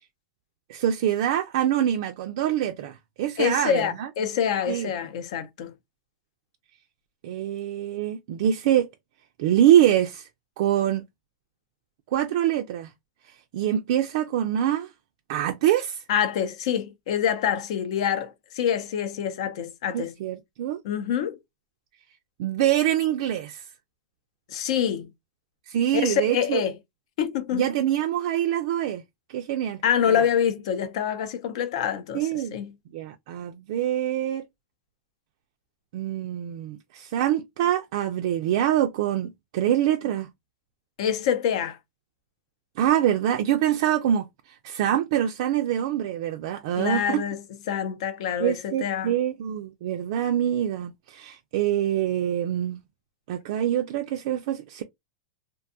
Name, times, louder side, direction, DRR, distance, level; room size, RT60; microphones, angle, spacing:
voice 1, 0.7-4.1 4.7-4.9 7.2-8.9 9.4-10.3 10.6-11.0 12.1-12.9 13.5-14.9 15.3-16.0 19.9-20.8 22.4-23.6 25.7-26.6 27.5-29.0 29.3-29.8 30.1-30.2 32.1-32.6 32.9-34.4 35.9-40.3 42.8-44.3 44.6-47.2 48.4-52.8 53.3-54.8, right 11 dB, 60° right, 0.3 m, -25 dB
voice 2, 3.4-5.7 16.1-20.1 20.8-21.4 24.5-25.1 25.9-26.7 27.2-27.6 29.8-32.7 41.0-41.8 46.8-49.1, left 8 dB, 65° left, 0.6 m, -26 dB
2.6 x 2.2 x 2.5 m
supercardioid pair, 140°, 3 cm